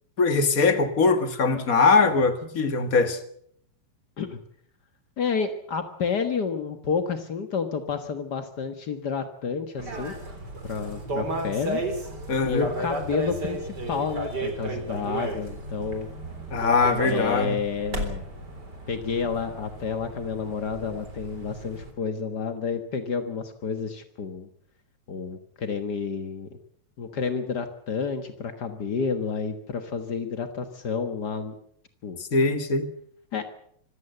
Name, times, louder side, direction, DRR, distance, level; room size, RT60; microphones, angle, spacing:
voice 1, 0.2-3.2 12.3-12.7 16.5-17.6 32.3-32.9, left 4 dB, 35° left, 1.4 m, -21 dB
voice 2, 5.2-10.1 10.6-11.8 12.4-16.1 17.0-18.2 18.9-24.5 25.1-26.6 27.0-31.6 32.0-32.2 33.3-33.5, left 5 dB, 65° left, 1.0 m, -30 dB
sound 1, 9.8-21.9, right 1 dB, 25° right, 4.1 m, -34 dB
25.5 x 16.0 x 8.0 m
omnidirectional pair, 4.2 m